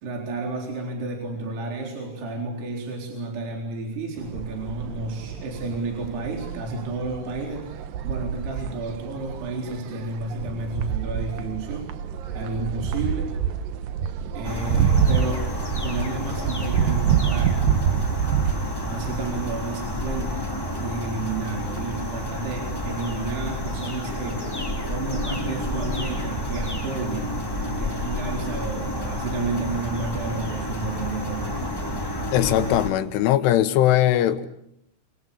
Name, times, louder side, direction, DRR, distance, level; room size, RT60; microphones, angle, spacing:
voice 1, 0.0-7.7 8.0-12.0 12.3-13.3 14.3-15.5 15.8-17.6 18.8-20.5 20.8-24.5 24.9-31.7, right 3 dB, 55° right, 1 dB, 5.8 m, -31 dB
sound 1, 4.2-19.4, right 7 dB, 80° right, 2.0 m, -27 dB
sound 2, 14.4-32.9, equal, 5° left, 2.0 m, -30 dB
voice 2, 32.3-34.5, left 13 dB, 80° left, 10 dB, 3.6 m, -20 dB
28.5 x 23.5 x 7.1 m, 0.72 s
omnidirectional pair, 5.7 m